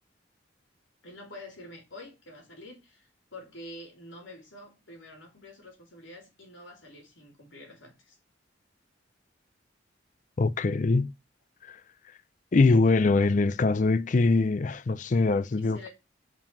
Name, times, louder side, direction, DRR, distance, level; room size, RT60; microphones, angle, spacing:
voice 1, 1.0-8.2 15.5-15.9, left 1 dB, 85° left, 3.5 m, -47 dB
voice 2, 10.4-11.1 11.6-11.8 12.5-15.9, left 3 dB, 40° left, 0.4 m, -23 dB
5.5 x 4.9 x 5.3 m
head